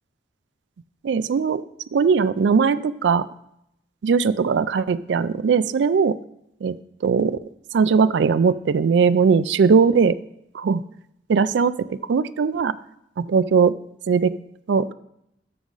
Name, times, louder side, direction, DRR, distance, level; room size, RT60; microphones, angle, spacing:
voice 1, 1.0-1.6 1.9-3.3 4.0-6.2 6.6-6.8 7.0-7.4 7.7-10.2 10.5-10.8 11.3-12.8 13.2-13.7 14.1-14.3 14.7-14.9, right 5 dB, 80° right, 15 dB, 0.4 m, -19 dB
12.5 x 6.0 x 3.9 m, 0.80 s
head